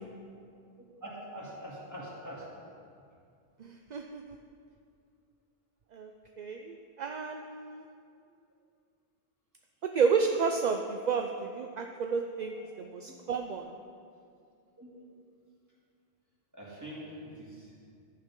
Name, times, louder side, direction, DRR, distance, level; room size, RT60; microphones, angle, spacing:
voice 1, 1.0-2.4 13.0-13.2 14.8-14.9 16.5-17.7, equal, 15° right, -6 dB, 2.8 m, -44 dB
voice 2, 3.6-4.4 5.9-6.1 6.4-7.9 9.9-13.7, right 5 dB, 50° right, 4 dB, 0.6 m, -31 dB
14.5 x 10.0 x 3.8 m, 2.3 s
omnidirectional pair, 1.2 m